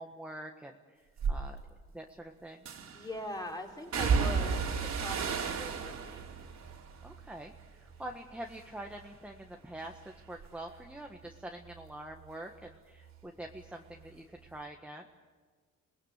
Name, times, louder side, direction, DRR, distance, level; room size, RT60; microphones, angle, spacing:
voice 1, 0.0-1.6 1.9-2.6 7.0-15.1, right 1 dB, 5° right, 2 dB, 1.6 m, -45 dB
sound 1, 1.2-1.4 2.7-3.1 3.9-8.2 8.5-9.1 9.5-12.8 13.0-14.2 14.4-14.6, right 5 dB, 65° right, 3.4 m, -35 dB
voice 2, 2.9-6.2, left 1 dB, 15° left, 1 dB, 3.9 m, -42 dB
27.5 x 19.0 x 8.3 m, 1.5 s
cardioid pair, 90°, 30 cm